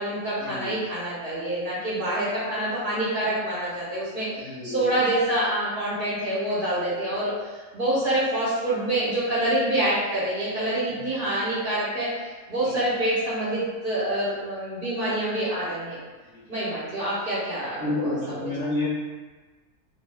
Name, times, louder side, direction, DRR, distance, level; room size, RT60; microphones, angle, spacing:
voice 1, 0.0-16.0 16.5-18.5, right 1 dB, 50° right, -10 dB, 0.9 m, -26 dB
voice 2, 4.4-4.9 10.9-11.0 12.6-12.8 16.3-16.4 17.8-18.9, left 2 dB, 15° left, -11 dB, 0.7 m, -30 dB
2.3 x 2.2 x 3.3 m, 1.3 s
omnidirectional pair, 1.4 m